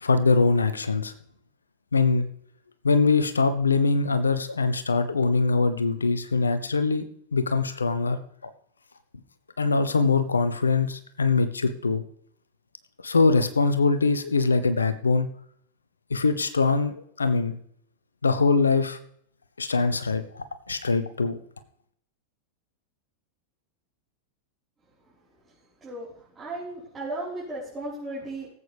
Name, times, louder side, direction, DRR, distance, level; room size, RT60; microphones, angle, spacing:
voice 1, 0.0-1.1 1.9-2.3 2.8-8.2 9.6-12.0 13.0-15.3 16.1-17.6 18.2-19.0 19.6-21.4, left 4 dB, 75° left, 12 dB, 0.7 m, -23 dB
voice 2, 26.3-28.5, right 2 dB, 20° right, -10 dB, 4.5 m, -35 dB
18.0 x 8.3 x 3.5 m, 0.68 s
figure-of-eight pair, 90°, 0 cm